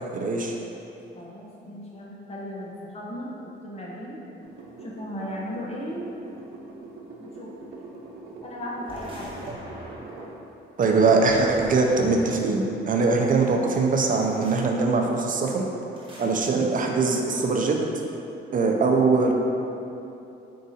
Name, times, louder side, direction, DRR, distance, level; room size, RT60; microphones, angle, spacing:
voice 1, 0.1-0.6 9.5-9.6 10.8-15.7 16.2-17.8 18.5-19.3, right 3 dB, 45° right, 1 dB, 0.5 m, -22 dB
voice 2, 1.2-4.2 4.8-6.4 7.2-7.5 8.4-9.3, equal, 30° left, -4 dB, 1.0 m, -36 dB
sound 1, 4.4-10.4 10.8-10.9, right 2 dB, 80° right, 0.7 m, -43 dB
sound 2, 8.9-10.3 11.2-12.7 14.1-14.7 15.9-16.5, equal, 25° right, 1.3 m, -43 dB
4.6 x 2.6 x 4.1 m, 2.9 s
cardioid pair, 90°, 20 cm